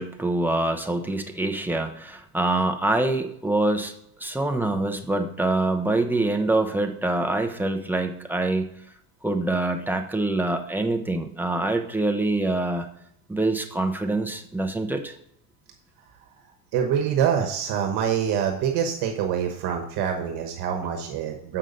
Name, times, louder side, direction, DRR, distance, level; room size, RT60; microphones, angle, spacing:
voice 1, 0.0-3.9 4.2-8.7 9.2-12.9 13.3-15.1, right 2 dB, 5° right, 4 dB, 0.6 m, -25 dB
voice 2, 16.7-21.6, right 8 dB, 60° right, 4 dB, 1.2 m, -25 dB
7.7 x 5.4 x 5.1 m, 0.75 s
cardioid pair, 140°, 44 cm